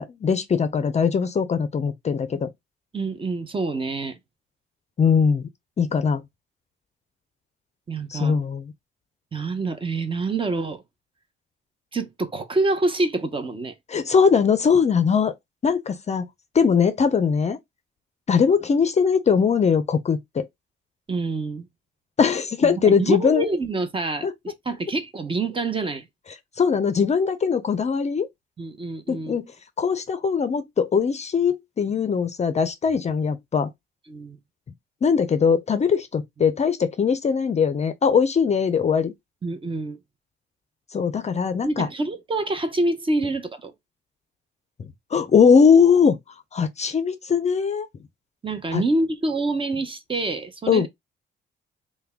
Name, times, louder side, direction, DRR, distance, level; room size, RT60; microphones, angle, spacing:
voice 1, 0.0-2.5 5.0-5.5 5.8-6.2 8.1-8.7 13.9-15.3 15.6-16.3 16.5-17.6 18.3-20.5 22.2-23.5 24.2-24.3 26.6-28.3 29.1-29.5 29.8-33.7 35.0-39.1 40.9-41.9 45.1-46.2 46.5-47.9 48.7-48.8 50.7-50.9, left 6 dB, 35° left, 0.5 m, -20 dB
voice 2, 2.9-4.2 7.9-8.4 9.3-10.8 11.9-13.7 21.1-21.7 22.6-26.1 28.6-29.4 34.1-34.4 39.4-40.0 41.6-43.7 48.4-50.9, right 2 dB, 25° right, 0.7 m, -26 dB
3.3 x 2.2 x 3.4 m
cardioid pair, 90°, 20 cm